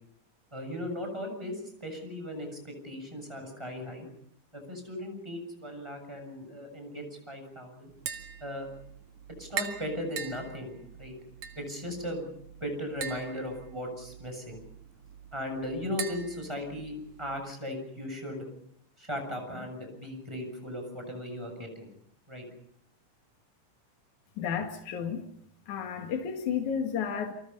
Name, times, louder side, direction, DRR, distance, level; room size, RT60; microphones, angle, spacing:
voice 1, 0.5-4.1 4.5-7.9 8.4-8.7 9.4-11.1 11.5-12.3 12.6-14.6 15.3-18.4 19.0-21.9 22.3-22.5, left 1 dB, 10° right, 4 dB, 6.8 m, -37 dB
Tap, 7.9-17.4, right 7 dB, 70° right, 3.1 m, -42 dB
voice 2, 24.4-25.2 25.7-27.3, left 7 dB, 70° left, 4 dB, 3.4 m, -32 dB
29.0 x 24.5 x 5.5 m, 0.68 s
omnidirectional pair, 3.6 m